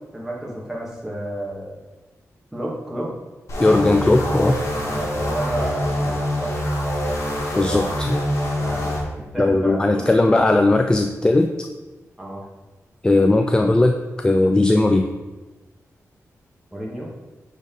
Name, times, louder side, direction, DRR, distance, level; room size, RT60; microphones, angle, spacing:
voice 1, 0.1-1.8 2.5-3.1 4.8-6.6 8.6-8.9 9.3-10.3 12.2-12.4 16.7-17.1, right 1 dB, 10° right, -4 dB, 1.7 m, -30 dB
sound 1, 3.5-9.0, equal, 65° left, 1.7 m, -25 dB
voice 2, 3.6-4.6 7.5-8.2 9.4-11.5 13.0-15.1, left 2 dB, 15° left, 5 dB, 0.4 m, -18 dB
9.0 x 3.6 x 3.8 m, 1.1 s
wide cardioid pair, 110°, 6 cm